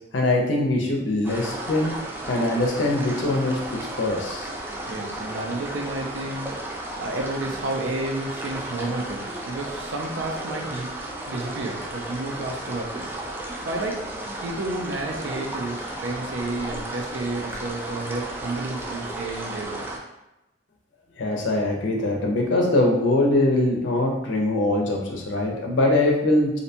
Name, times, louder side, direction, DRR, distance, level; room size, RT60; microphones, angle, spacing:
voice 1, 0.1-1.9 2.3-3.6 4.0-4.5 21.2-26.6, left 2 dB, 75° left, 0 dB, 0.5 m, -22 dB
sound 1, 1.2-20.0, right 1 dB, 10° right, 0.3 m, -34 dB
voice 2, 4.9-6.5 7.0-11.0 11.3-13.1 13.7-14.1 14.4-19.8, right 2 dB, 90° right, 2 dB, 0.5 m, -31 dB
2.6 x 2.1 x 2.7 m, 0.93 s
head